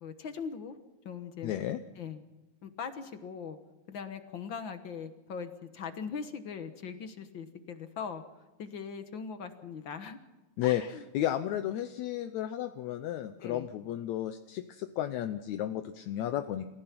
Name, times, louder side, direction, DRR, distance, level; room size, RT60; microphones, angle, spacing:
voice 1, 0.0-0.8 1.0-1.5 2.0-2.2 2.6-3.6 3.9-8.2 8.6-10.2 10.6-11.0 13.4-13.7, left 6 dB, 55° left, 9 dB, 1.5 m, -40 dB
voice 2, 1.4-1.8 10.6-10.8 11.1-16.7, left 12 dB, 75° left, 9 dB, 2.0 m, -33 dB
29.0 x 15.0 x 6.0 m, 1.1 s
omnidirectional pair, 3.5 m